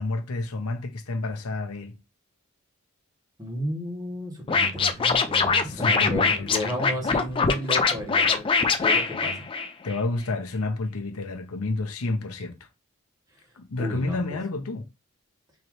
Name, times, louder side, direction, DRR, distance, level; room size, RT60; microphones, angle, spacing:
voice 1, 0.0-2.0 5.6-6.7 9.8-12.6 13.6-14.8, left 2 dB, 75° left, 0.7 m, -30 dB
voice 2, 3.4-9.4 13.8-14.2, equal, 15° right, 1.5 m, -33 dB
Scratching (performance technique), 4.5-10.0, left 5 dB, 25° left, 0.4 m, -23 dB
3.8 x 3.0 x 3.1 m
head